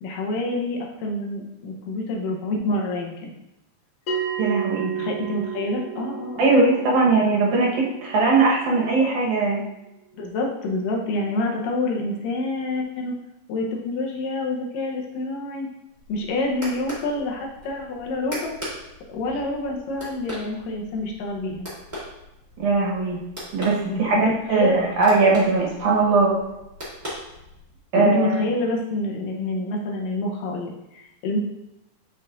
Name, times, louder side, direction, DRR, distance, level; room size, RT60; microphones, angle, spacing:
voice 1, 0.0-3.3 5.0-6.6 10.2-13.2 13.5-15.7 16.1-18.5 19.1-21.7 23.9-24.2 24.5-24.8 27.9-31.4, left 2 dB, 80° left, 0 dB, 2.5 m, -27 dB
Bell, 4.1-9.1, right 7 dB, 60° left, 1.0 m, -33 dB
voice 2, 4.4-4.9 6.4-9.6 22.6-23.2 23.5-26.3 27.9-28.3, right 3 dB, 70° right, -3 dB, 2.5 m, -20 dB
sound 1, 15.9-27.8, equal, 15° right, 1.7 m, -40 dB
8.7 x 5.5 x 2.5 m, 0.90 s
omnidirectional pair, 4.0 m